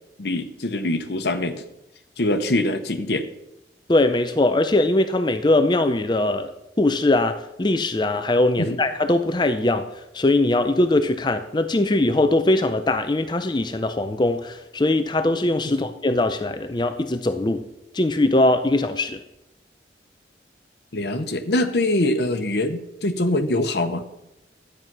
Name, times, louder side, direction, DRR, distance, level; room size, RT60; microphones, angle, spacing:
voice 1, 0.2-1.6 2.2-3.3 8.6-8.8 15.6-15.9 20.9-24.0, left 1 dB, 65° left, 4 dB, 0.9 m, -23 dB
voice 2, 3.9-6.5 6.8-17.7 17.9-19.2, left 2 dB, 25° left, 9 dB, 0.5 m, -21 dB
12.5 x 9.3 x 6.1 m, 0.90 s
head